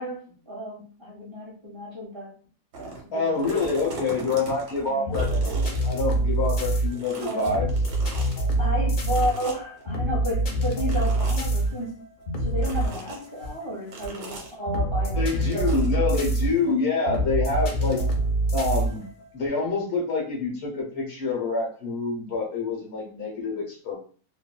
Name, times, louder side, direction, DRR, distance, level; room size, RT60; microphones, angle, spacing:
voice 1, 0.0-2.3 2.8-3.4 4.9-5.5 7.2-7.6 8.6-12.0 12.4-15.8, equal, 20° right, -4 dB, 0.8 m, -32 dB
sound 1, 2.7-3.0 3.3-6.7 6.9-8.4 9.1-9.8 10.8-11.5 12.6-13.3 13.9-14.5 15.6-15.9, right 3 dB, 85° right, 1.5 m, -40 dB
voice 2, 3.1-7.7 15.1-18.0 18.5-19.1 19.3-23.9, left 3 dB, 50° left, -2 dB, 1.0 m, -27 dB
sound 2, 4.8-19.5, right 2 dB, 80° left, 0.5 m, -26 dB
3.0 x 2.6 x 2.2 m, 0.41 s
omnidirectional pair, 1.8 m